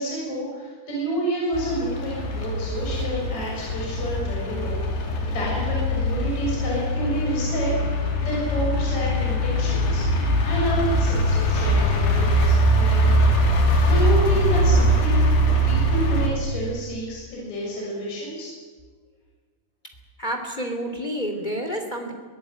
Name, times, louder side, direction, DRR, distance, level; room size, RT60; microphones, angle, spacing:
voice 1, 0.0-4.8 5.3-10.0 10.4-13.2 13.9-15.2 15.7-18.5, right 1 dB, 40° left, -4 dB, 7.7 m, -29 dB
sound 1, 1.5-16.3, equal, 70° left, 5.2 m, -22 dB
voice 2, 20.2-22.1, equal, 20° left, 4 dB, 1.3 m, -29 dB
23.5 x 18.0 x 9.1 m, 1.5 s
omnidirectional pair, 5.1 m